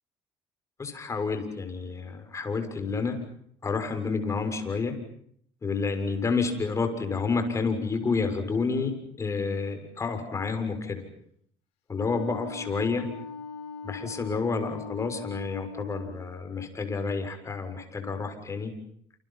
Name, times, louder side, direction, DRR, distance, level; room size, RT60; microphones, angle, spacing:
voice 1, 0.8-3.2 3.6-5.0 5.6-11.0 11.9-13.1 13.8-18.7, left 4 dB, 30° left, 7 dB, 6.7 m, -29 dB
Wind instrument woodwind instrument, 11.9-16.2, left 4 dB, 75° left, 5.7 m, -40 dB
29.5 x 28.5 x 5.9 m, 0.65 s
cardioid pair, 95°, 10 cm